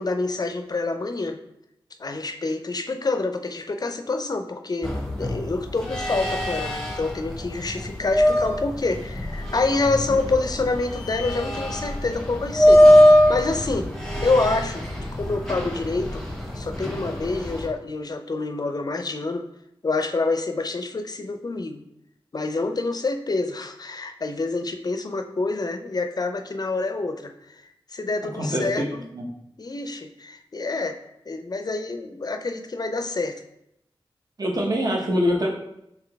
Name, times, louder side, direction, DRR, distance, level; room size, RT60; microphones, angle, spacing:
voice 1, 0.0-1.4 2.0-4.9 5.2-13.9 14.2-14.8 15.2-16.2 16.5-19.4 19.8-21.8 22.3-27.6 27.9-29.0 29.6-31.0 31.3-33.4, left 3 dB, 45° left, 6 dB, 0.4 m, -27 dB
sound 1, 4.8-17.7, left 1 dB, 5° left, 0.9 m, -22 dB
voice 2, 28.4-28.8 29.1-29.2 34.4-35.5, equal, 45° right, -1 dB, 0.9 m, -24 dB
3.8 x 2.9 x 3.4 m, 0.79 s
cardioid pair, 55°, 9 cm